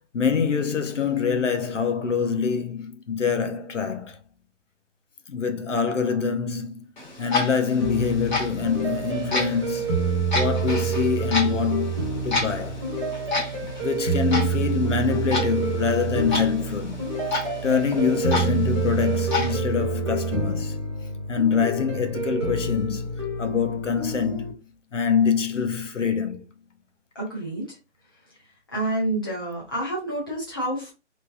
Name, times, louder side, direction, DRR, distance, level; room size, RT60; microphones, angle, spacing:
voice 1, 0.1-4.2 5.3-6.9 7.2-9.9 10.3-11.9 12.2-12.8 13.8-17.0 17.6-20.7 21.3-23.0 23.4-24.5 24.9-26.4, left 6 dB, 80° left, 0.9 m, -25 dB
Clock, 7.0-19.5, left 3 dB, 40° left, 1.3 m, -31 dB
sound 1, 7.8-24.5, right 4 dB, 25° right, 0.7 m, -28 dB
voice 2, 27.1-27.7 28.7-30.9, right 1 dB, 20° left, 1.0 m, -28 dB
3.2 x 3.2 x 2.5 m
hypercardioid pair, 175°, 36 cm